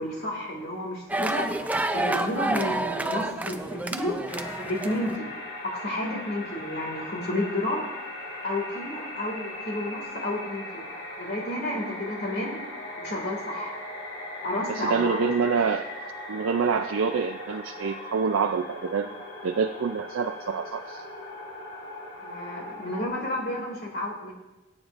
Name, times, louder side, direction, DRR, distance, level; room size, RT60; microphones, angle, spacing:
voice 1, 0.0-4.2 4.6-5.3 5.6-7.8 8.4-10.9 11.2-12.6 13.0-13.7 14.4-15.3 22.2-24.3, left 1 dB, 50° left, -1 dB, 2.2 m, -31 dB
sound 1, 1.1-5.2, right 1 dB, 5° right, 0.4 m, -29 dB
sound 2, 4.3-23.1, left 1 dB, 80° left, 3.5 m, -39 dB
voice 2, 14.7-15.9 16.3-19.2 19.4-21.0, right 5 dB, 80° right, 6 dB, 0.4 m, -26 dB
19.0 x 8.7 x 2.5 m, 1.1 s
head